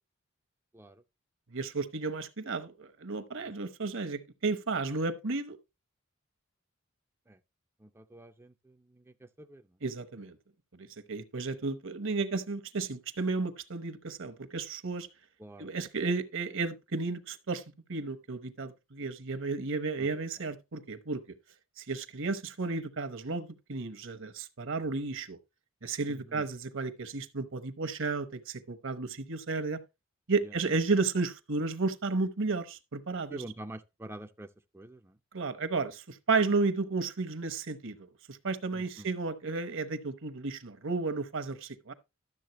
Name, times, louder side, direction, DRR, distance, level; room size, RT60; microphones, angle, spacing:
voice 1, 1.5-5.6 9.8-10.3 10.8-15.1 15.6-17.6 17.9-21.2 21.8-25.4 25.8-29.8 30.3-33.4 35.3-41.9, right 3 dB, 65° right, 1.0 m, -33 dB
voice 2, 7.8-9.6 15.4-15.7 20.0-20.2 26.1-26.4 30.4-30.5 33.3-34.5 34.7-35.2 38.7-39.1, right 1 dB, 10° right, 0.5 m, -47 dB
12.0 x 7.3 x 3.0 m
head